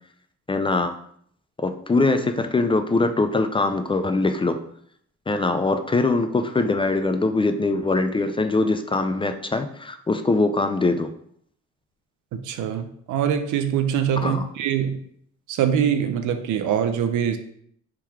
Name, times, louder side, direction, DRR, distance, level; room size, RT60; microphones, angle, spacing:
voice 1, 0.5-0.9 1.6-4.6 5.3-11.1 14.2-14.5, left 3 dB, 20° left, 7 dB, 0.3 m, -22 dB
voice 2, 12.3-15.0 15.5-17.4, right 8 dB, 80° right, 9 dB, 0.6 m, -23 dB
3.7 x 3.0 x 4.6 m, 0.65 s
cardioid pair, 90°, 30 cm